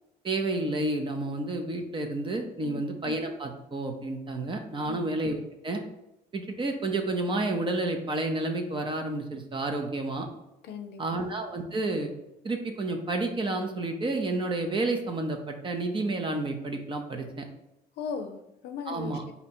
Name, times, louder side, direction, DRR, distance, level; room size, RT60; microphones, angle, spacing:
voice 1, 0.2-5.8 6.3-10.3 11.0-12.1 12.4-17.4 18.9-19.2, right 2 dB, 30° right, 4 dB, 0.6 m, -30 dB
voice 2, 10.6-11.2 18.0-19.3, left 5 dB, 75° left, 6 dB, 0.5 m, -38 dB
4.3 x 2.8 x 4.3 m, 0.89 s
cardioid pair, 110°, 17 cm